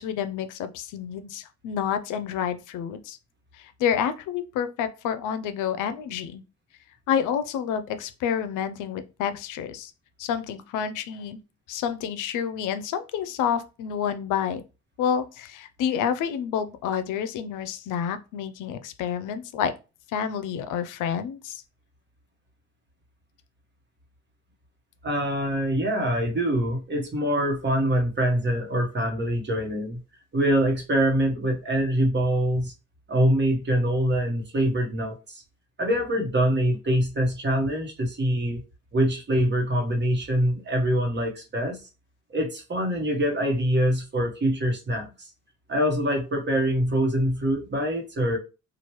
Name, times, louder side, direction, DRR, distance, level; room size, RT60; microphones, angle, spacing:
voice 1, 0.0-3.2 3.6-6.4 7.1-9.9 10.2-11.4 11.7-14.6 15.0-19.7 20.1-21.6, left 8 dB, 85° left, 0.5 m, -29 dB
voice 2, 25.0-30.0 30.3-32.7 33.1-35.4 35.8-38.6 38.9-41.8 42.3-45.3 45.7-48.4, right 1 dB, 35° right, 1.1 m, -24 dB
3.1 x 2.4 x 3.0 m
cardioid pair, 90°, 30 cm